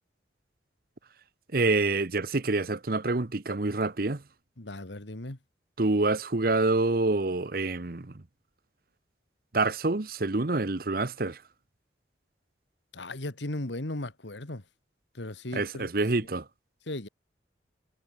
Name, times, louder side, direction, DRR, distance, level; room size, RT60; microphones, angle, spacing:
voice 1, 1.5-4.2 5.8-8.1 9.5-11.4 15.5-16.4, right 3 dB, 55° right, 1.0 m, -27 dB
voice 2, 4.6-5.4 12.9-14.6 15.1-15.9 16.9-17.1, left 1 dB, 85° left, 2.2 m, -36 dB
head